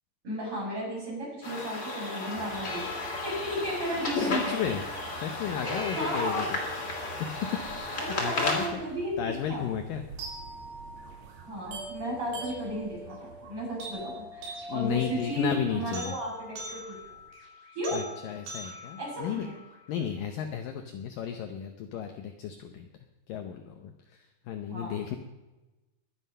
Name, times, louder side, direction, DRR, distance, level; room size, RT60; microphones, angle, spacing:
voice 1, 0.2-4.5 5.5-6.4 8.0-9.6 11.5-16.9 17.7-18.0 19.0-19.5 24.7-24.9, equal, 30° right, -5 dB, 7.9 m, -34 dB
sound 1, 1.4-8.7, left 2 dB, 30° left, 2.8 m, -33 dB
sound 2, 2.3-17.3, right 5 dB, 50° right, 2.6 m, -50 dB
voice 2, 4.1-4.8 5.1-6.6 7.2-7.6 7.9-8.8 9.2-10.0 14.7-16.1 17.9-19.5 19.9-22.9 23.3-25.2, left 8 dB, 80° left, 5 dB, 2.0 m, -33 dB
sound 3, 10.2-20.2, right 1 dB, 75° right, 5.6 m, -43 dB
22.5 x 9.3 x 5.6 m, 1.1 s
omnidirectional pair, 5.2 m